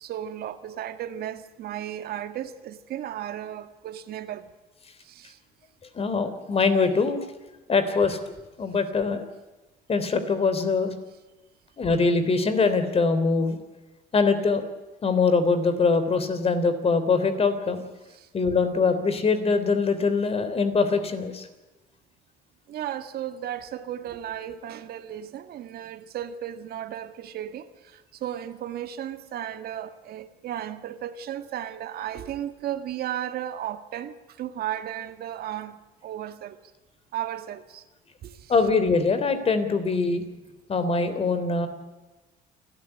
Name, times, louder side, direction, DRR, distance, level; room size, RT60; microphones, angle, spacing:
voice 1, 0.0-4.5 5.0-5.4 18.1-18.3 22.7-36.6 37.1-37.8 38.2-38.5, right 11 dB, 65° right, 1.8 m, -35 dB
voice 2, 5.9-7.2 7.7-8.2 8.6-9.2 9.9-10.9 11.8-13.6 14.1-14.6 15.0-17.8 18.3-21.5 38.5-40.2 40.7-41.7, left 4 dB, 35° left, 3.5 m, -23 dB
29.0 x 13.0 x 9.9 m
cardioid pair, 110°, 17 cm